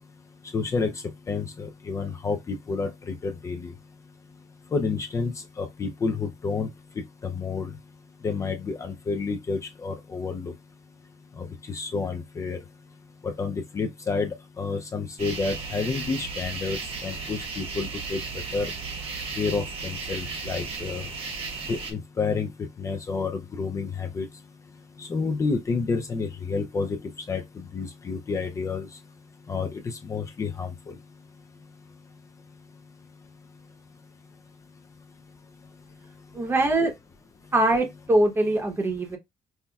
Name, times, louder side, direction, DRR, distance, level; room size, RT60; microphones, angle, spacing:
voice 1, 0.5-0.9 1.3-3.7 4.7-6.7 7.2-7.7 8.2-10.5 11.4-12.6 13.2-18.2 18.5-18.7 19.4-21.1 21.7-22.5 22.8-24.3 25.0-27.0 27.3-28.9 29.5-30.9, left 4 dB, 25° left, 0.4 m, -29 dB
sound 1, 15.2-21.9, right 4 dB, 50° right, 1.0 m, -35 dB
voice 2, 36.3-36.9 37.5-39.2, right 2 dB, 20° right, 0.9 m, -22 dB
5.4 x 2.2 x 2.3 m
cardioid pair, 160°, 12 cm